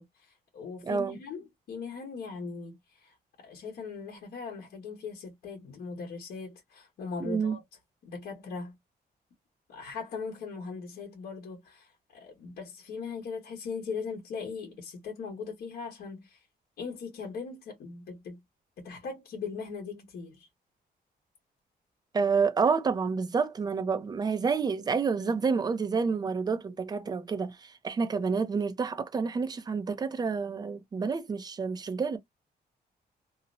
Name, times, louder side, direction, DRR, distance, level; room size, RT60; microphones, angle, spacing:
voice 1, 0.0-7.6 8.0-8.8 9.7-16.4 16.8-18.4 18.8-20.5, left 5 dB, 75° left, 1.3 m, -40 dB
voice 2, 0.8-1.2 7.2-7.6 22.1-32.2, right 5 dB, 25° right, 0.4 m, -29 dB
2.8 x 2.1 x 2.5 m
cardioid pair, 145°, 17 cm